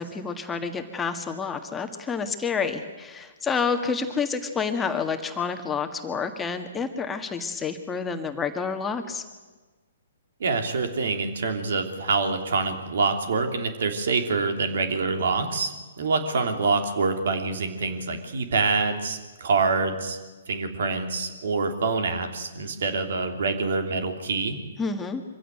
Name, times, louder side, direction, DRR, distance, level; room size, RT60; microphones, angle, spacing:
voice 1, 0.0-9.2 24.8-25.2, left 5 dB, 15° left, 5 dB, 1.7 m, -29 dB
voice 2, 10.4-20.2 20.5-24.6, right 4 dB, 65° right, 6 dB, 3.0 m, -26 dB
24.0 x 16.0 x 9.3 m, 1.3 s
figure-of-eight pair, 125°, 0 cm